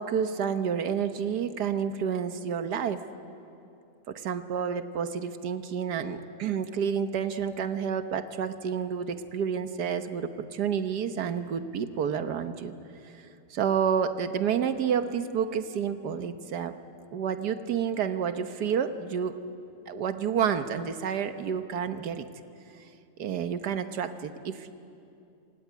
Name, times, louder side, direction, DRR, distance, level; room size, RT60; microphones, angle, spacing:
voice 1, 0.0-3.0 4.1-12.7 13.5-16.7 17.1-19.3 19.9-22.3 23.2-24.7, right 7 dB, 75° right, 9 dB, 1.6 m, -29 dB
27.0 x 16.5 x 9.4 m, 2.7 s
omnidirectional pair, 1.8 m